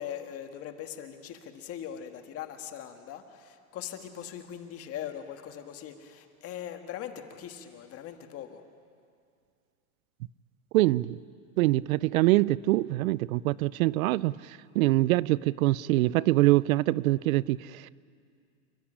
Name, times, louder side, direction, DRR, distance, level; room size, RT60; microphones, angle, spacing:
voice 1, 0.0-8.6, left 10 dB, 30° left, 6 dB, 1.8 m, -41 dB
voice 2, 10.7-11.2 11.6-14.3 14.8-17.9, right 18 dB, 70° right, 21 dB, 0.6 m, -24 dB
28.0 x 13.0 x 10.0 m, 2.3 s
supercardioid pair, 145°, 44 cm